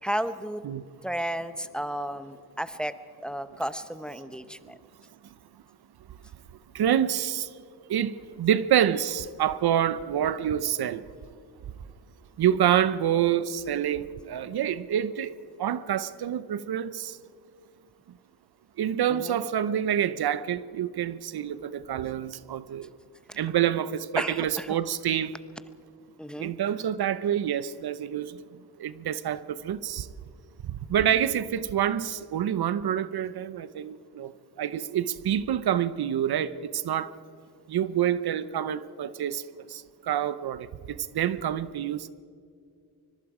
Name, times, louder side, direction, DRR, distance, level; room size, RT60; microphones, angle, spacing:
voice 1, 0.0-0.6 1.0-2.9 3.2-4.8 19.1-19.4 23.3-23.4 24.2-24.8 26.2-26.5, equal, ahead, 12 dB, 0.9 m, -33 dB
voice 2, 6.7-7.5 7.9-11.0 12.4-15.3 15.6-17.2 18.8-22.9 23.4-25.3 26.4-28.4 28.8-30.1 30.9-34.3 34.6-37.1 37.7-39.4 39.7-42.1, right 10 dB, 75° right, 16 dB, 0.8 m, -27 dB
24.5 x 22.0 x 5.0 m, 2.3 s
cardioid pair, 90°, 39 cm